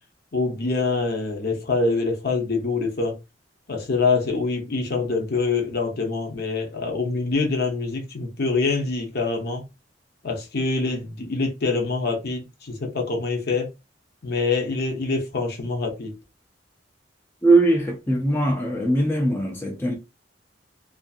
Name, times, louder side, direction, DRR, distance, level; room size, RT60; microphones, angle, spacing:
voice 1, 0.3-3.2 3.7-9.6 10.2-13.7 14.2-16.1, left 3 dB, 60° left, 0.7 m, -25 dB
voice 2, 17.4-19.9, right 2 dB, 10° left, 0.4 m, -20 dB
2.6 x 2.5 x 2.3 m
head